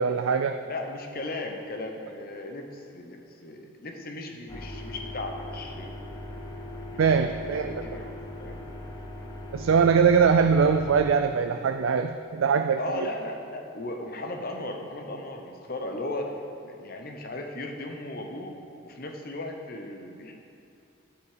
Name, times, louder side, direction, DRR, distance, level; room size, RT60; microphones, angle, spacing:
voice 1, 0.0-0.6 7.0-7.7 9.5-13.0, right 6 dB, 70° right, 7 dB, 0.4 m, -22 dB
voice 2, 0.6-6.1 6.9-8.1 8.4-8.6 12.8-16.3 16.6-18.6 18.8-20.3, left 2 dB, 45° left, 3 dB, 1.0 m, -36 dB
sound 1, 4.5-11.1, left 1 dB, 20° left, 0.7 m, -39 dB
9.2 x 8.4 x 5.0 m, 2.6 s
head